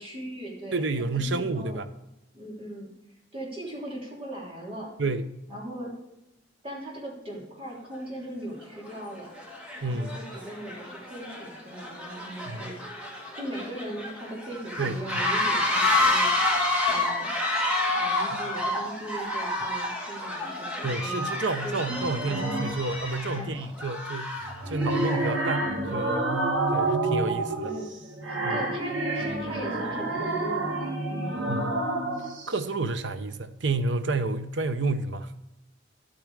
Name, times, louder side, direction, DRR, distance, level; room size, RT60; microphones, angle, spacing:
voice 1, 0.0-0.8 1.2-1.8 2.3-2.9 3.3-4.9 5.5-5.9 6.6-9.3 9.8-12.7 13.4-16.3 16.9-17.3 17.9-21.2 21.6-21.7 22.2-22.4 23.3-23.6 27.6-27.9 28.2-31.4, right 1 dB, 30° right, 3.2 m, -39 dB
voice 2, 0.7-1.9 5.0-5.4 9.8-10.2 12.5-12.7 14.8-15.3 18.3-18.4 20.8-26.3 26.7-27.7 28.4-28.5 31.5-31.8 32.5-35.3, right 3 dB, 70° right, 0.8 m, -30 dB
sound 1, 7.9-8.0 8.8-9.0 9.3-25.3, left 2 dB, 5° right, 2.1 m, -29 dB
sound 2, 21.9-22.8 24.4-32.5, right 2 dB, 85° right, 2.0 m, -29 dB
11.0 x 8.7 x 4.8 m
head